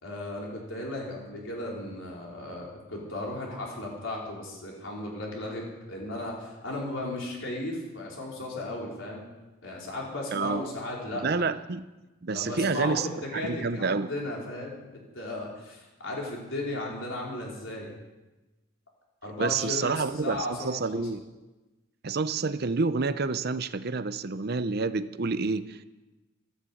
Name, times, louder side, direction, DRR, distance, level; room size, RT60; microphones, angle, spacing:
voice 1, 0.0-9.3 9.6-11.5 12.3-17.9 19.2-21.1, left 1 dB, 65° left, -2 dB, 4.4 m, -35 dB
voice 2, 10.3-10.6 11.2-11.8 12.2-13.1 13.3-14.1 19.4-21.2 22.0-25.9, right 4 dB, 50° right, 13 dB, 0.6 m, -28 dB
14.5 x 10.5 x 8.6 m, 1.1 s
head